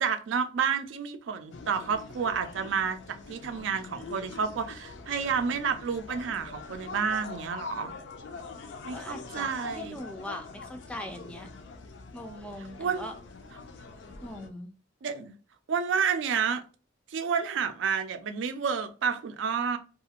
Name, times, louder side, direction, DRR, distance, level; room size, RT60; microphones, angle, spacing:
voice 1, 0.0-7.9 8.8-10.0 12.8-13.1 15.0-15.3 15.7-16.6 17.1-19.8, right 6 dB, 75° right, 0.4 m, -30 dB
sound 1, 1.5-14.5, left 4 dB, 75° left, 0.4 m, -44 dB
voice 2, 8.9-11.5 12.1-13.1 14.2-14.7, left 1 dB, 5° left, 0.3 m, -41 dB
2.4 x 2.3 x 2.8 m
head